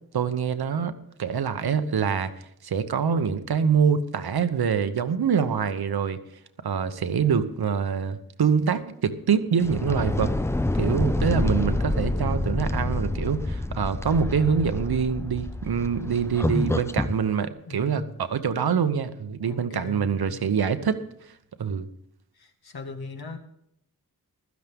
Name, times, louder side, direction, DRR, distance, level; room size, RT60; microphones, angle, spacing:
voice 1, 0.1-2.3 2.6-6.2 6.6-10.3 10.8-21.0 21.6-21.9, right 6 dB, 85° right, 10 dB, 1.0 m, -25 dB
sound 1, 9.6-17.2, left 2 dB, 10° left, 0.4 m, -27 dB
voice 2, 17.7-18.1 19.4-20.4 22.3-23.4, left 3 dB, 80° left, 5 dB, 1.8 m, -39 dB
15.5 x 12.5 x 3.5 m, 0.72 s
wide cardioid pair, 110°, 37 cm